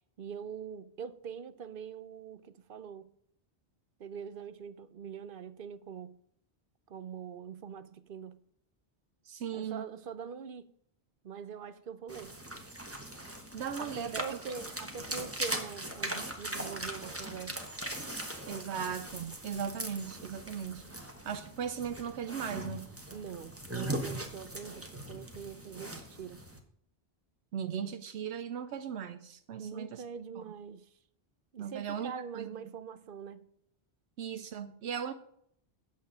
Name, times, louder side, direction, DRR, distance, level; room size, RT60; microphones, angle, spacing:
voice 1, 0.2-3.1 4.0-6.1 6.9-8.4 9.5-10.7 11.2-12.3 13.8-17.6 23.1-26.4 29.6-30.9 31.5-33.5, right 7 dB, 60° right, 0.8 m, -43 dB
voice 2, 9.3-9.8 13.5-14.4 18.5-20.8 21.2-22.9 27.5-30.0 30.4-30.5 31.6-32.7 34.2-35.1, right 8 dB, 80° right, 0.9 m, -38 dB
sound 1, 12.1-26.6, right 1 dB, 15° right, 1.2 m, -40 dB
8.4 x 7.5 x 5.0 m
omnidirectional pair, 1.1 m